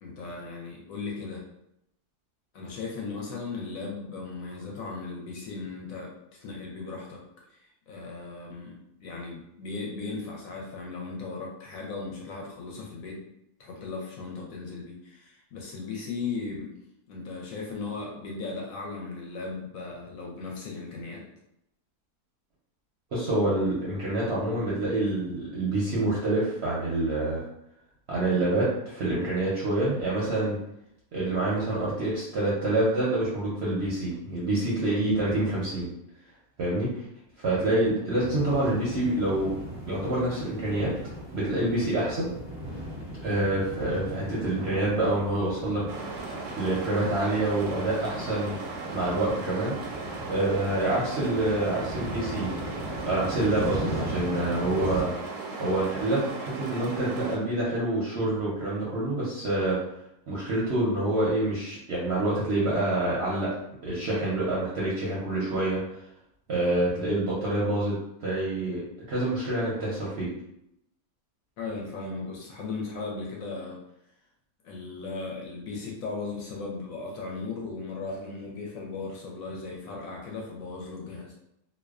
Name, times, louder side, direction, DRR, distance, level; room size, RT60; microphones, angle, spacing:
voice 1, 0.0-1.4 2.5-6.1 6.4-7.2 7.6-13.2 13.6-16.8 17.1-21.2 71.6-73.8 74.6-81.3, left 4 dB, 70° left, -2 dB, 0.9 m, -37 dB
voice 2, 23.1-27.4 28.1-30.6 31.1-35.9 36.6-37.0 37.4-39.5 39.8-40.9 41.3-42.3 43.2-46.1 46.6-48.6 48.9-49.7 50.3-52.5 52.8-55.1 55.6-59.8 60.3-63.5 63.8-65.8 66.5-68.8 69.1-70.3, right 2 dB, 60° right, -7 dB, 0.7 m, -27 dB
sound 1, 38.2-55.0, equal, 30° left, 0.7 m, -38 dB
sound 2, 45.9-57.4, right 3 dB, 90° right, 1.1 m, -37 dB
2.5 x 2.1 x 2.3 m, 0.79 s
omnidirectional pair, 1.6 m